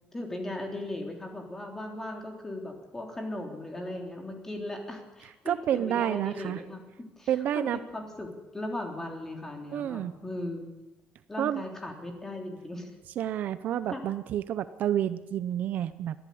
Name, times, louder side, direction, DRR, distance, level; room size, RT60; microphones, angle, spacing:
voice 1, 0.1-7.3 7.5-10.7 11.3-12.9 13.9-14.0, left 1 dB, 10° left, 3 dB, 3.5 m, -38 dB
voice 2, 5.5-6.6 7.3-7.8 9.7-10.1 11.4-11.6 13.2-16.1, right 11 dB, 55° right, 13 dB, 0.7 m, -29 dB
22.0 x 14.5 x 8.6 m, 1.0 s
cardioid pair, 165°, 3 cm